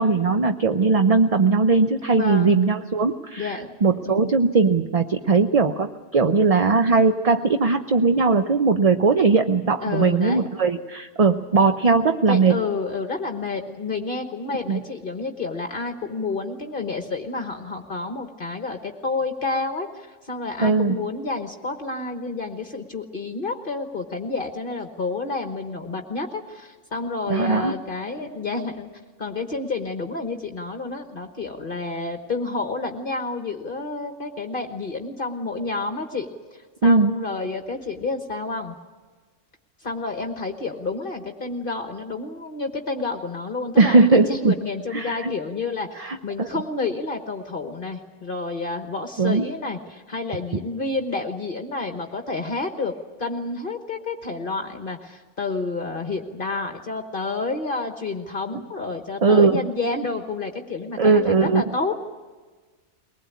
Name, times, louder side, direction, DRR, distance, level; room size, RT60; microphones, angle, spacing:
voice 1, 0.0-12.6 14.7-14.8 20.6-21.0 27.3-27.7 36.8-37.1 43.8-44.5 44.9-45.3 46.0-46.5 49.2-49.5 59.2-59.6 61.0-61.6, right 4 dB, 35° right, 7 dB, 0.7 m, -19 dB
voice 2, 2.1-2.7 3.4-3.8 4.0-4.3 9.8-10.5 12.3-28.9 29.2-38.8 39.8-52.9 53.2-62.0, left 3 dB, 45° left, 5 dB, 1.5 m, -29 dB
22.5 x 20.0 x 8.4 m, 1.4 s
omnidirectional pair, 1.2 m